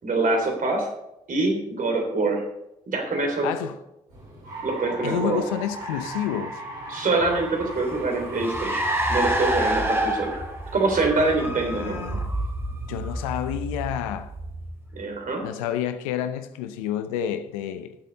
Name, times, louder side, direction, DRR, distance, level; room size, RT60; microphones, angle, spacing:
voice 1, 0.0-0.9 1.3-2.4 2.9-3.5 4.6-5.4 6.9-8.8 9.1-10.4 10.7-12.0 15.0-15.4, right 3 dB, 50° right, 3.5 m, -24 dB
voice 2, 3.4-3.8 5.0-6.6 10.9-12.3 12.9-14.3 15.4-18.0, left 10 dB, 85° left, 0.7 m, -30 dB
sound 1, 4.1-12.1, right 1 dB, 80° right, 4.6 m, -39 dB
Car, 7.2-15.0, right 1 dB, 15° right, 2.8 m, -28 dB
16.5 x 7.5 x 4.1 m
hypercardioid pair, 40°, 17 cm